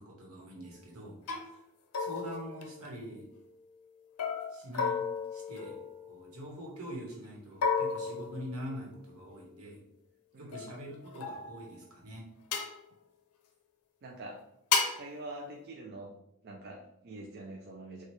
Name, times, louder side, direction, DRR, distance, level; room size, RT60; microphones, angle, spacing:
voice 1, 0.0-1.6 2.0-3.2 4.5-5.0 5.3-5.8 6.1-9.8 10.4-12.2, equal, 75° right, -2 dB, 1.2 m, -44 dB
sound 1, 0.6-0.8 1.3-1.5 1.9-3.3 4.2-6.4 7.6-9.0 10.5-11.8 12.5-12.8 14.7-15.1, left 5 dB, 80° left, 0.5 m, -34 dB
voice 2, 10.3-10.7 14.0-14.4 14.9-16.1 16.4-18.0, right 2 dB, 45° right, -1 dB, 0.4 m, -45 dB
4.4 x 2.3 x 3.1 m, 0.82 s
head